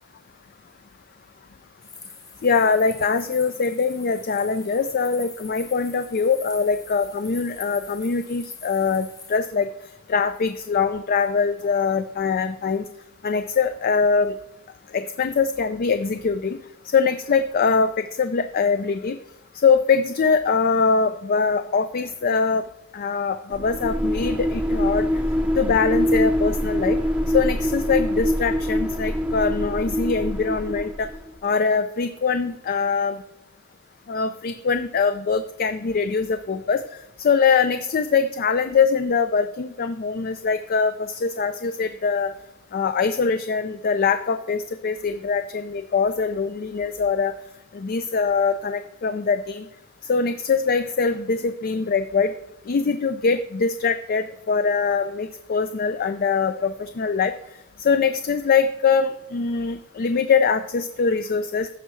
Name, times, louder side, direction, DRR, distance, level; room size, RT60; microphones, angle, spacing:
sound 1, 1.8-9.4, left 4 dB, 20° left, 0.9 m, -43 dB
voice 1, 2.4-9.7 10.1-12.8 13.2-14.4 14.9-16.6 16.9-19.2 19.5-22.6 22.9-25.1 25.6-27.0 27.3-31.1 31.4-33.2 34.1-36.8 37.2-42.3 42.7-47.3 47.7-49.7 50.1-52.3 52.7-57.3 57.8-61.7, left 5 dB, 45° left, 10 dB, 0.4 m, -23 dB
sound 2, 23.5-31.3, equal, 5° right, 0.8 m, -24 dB
14.5 x 5.5 x 3.1 m, 0.87 s
head